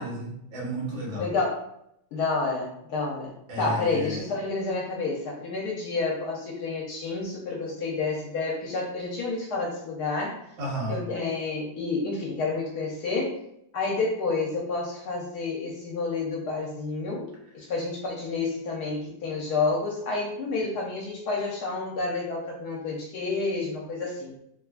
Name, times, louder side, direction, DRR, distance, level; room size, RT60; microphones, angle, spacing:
voice 1, 0.0-1.3 3.5-4.2 10.6-11.0, right 1 dB, 75° right, -3 dB, 1.7 m, -33 dB
voice 2, 1.2-1.7 2.1-10.4 10.9-13.4 13.7-17.3 17.5-24.3, left 3 dB, 70° left, -1 dB, 1.0 m, -29 dB
3.7 x 2.7 x 2.3 m, 0.78 s
omnidirectional pair, 2.1 m